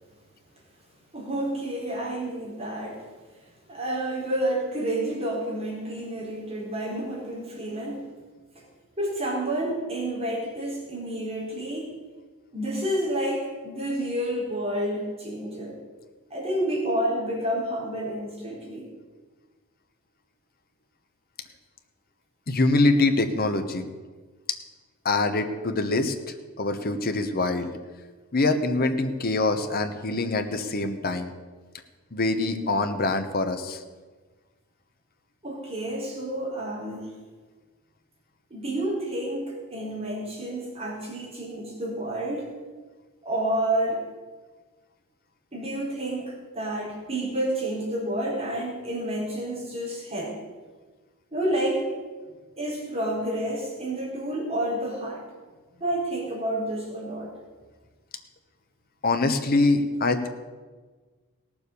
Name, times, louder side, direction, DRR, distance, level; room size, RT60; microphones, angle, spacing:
voice 1, 1.1-3.1 3.7-8.1 8.5-8.6 9.0-11.9 12.5-15.8 16.3-18.9 35.4-37.1 38.5-42.5 43.2-44.1 45.5-50.4 51.3-51.9 52.6-55.2 55.8-57.3, right 1 dB, 30° right, -5 dB, 4.6 m, -29 dB
voice 2, 22.5-23.9 25.0-26.1 26.6-27.7 28.3-31.3 32.1-33.8 59.0-60.3, left 2 dB, 45° left, 7 dB, 1.1 m, -24 dB
17.5 x 7.2 x 6.8 m, 1.4 s
head